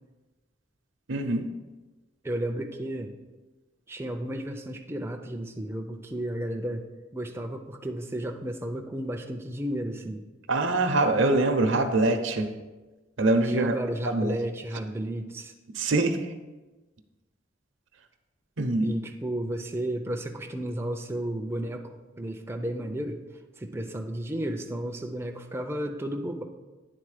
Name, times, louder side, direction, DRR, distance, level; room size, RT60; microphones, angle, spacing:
voice 1, 1.1-1.5 10.5-12.5 13.2-13.7 14.0-14.4 15.8-16.2 18.6-18.9, right 2 dB, 75° right, 7 dB, 0.7 m, -24 dB
voice 2, 2.2-3.2 3.9-6.8 7.1-10.2 13.4-15.5 18.8-23.2 23.6-26.4, right 1 dB, 15° right, 3 dB, 0.4 m, -33 dB
9.8 x 3.9 x 4.9 m, 1.2 s
head